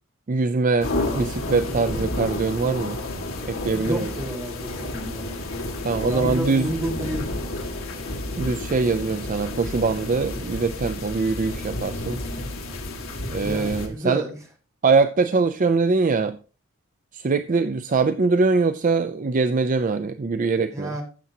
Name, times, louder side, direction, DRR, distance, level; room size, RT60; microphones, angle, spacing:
voice 1, 0.3-3.0 3.5-4.1 5.8-6.7 8.4-12.2 13.3-14.2 14.8-16.4 17.1-20.9, right 4 dB, 40° right, 11 dB, 0.4 m, -22 dB
sound 1, 0.8-13.9, left 1 dB, 75° left, 2.2 m, -31 dB
voice 2, 3.7-5.4 6.1-7.3 13.4-14.3 20.7-21.0, right 1 dB, 15° right, 1 dB, 2.2 m, -30 dB
15.0 x 7.1 x 2.8 m, 0.35 s
head